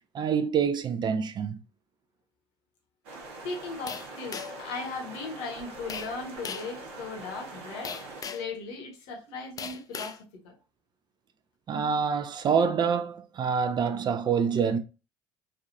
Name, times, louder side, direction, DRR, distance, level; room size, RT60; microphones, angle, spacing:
voice 1, 0.1-1.6 11.7-14.8, right 6 dB, 35° right, 0.5 m, -26 dB
sound 1, 3.0-8.2, right 2 dB, 65° right, 1.0 m, -43 dB
voice 2, 3.4-7.9 8.3-10.6, left 3 dB, 65° left, 1.0 m, -37 dB
sound 2, 3.9-4.7 5.9-6.1 6.4-6.7 7.8-8.5 9.6-10.2, left 6 dB, 30° left, 0.4 m, -38 dB
3.2 x 2.5 x 2.5 m
figure-of-eight pair, 60°, 12 cm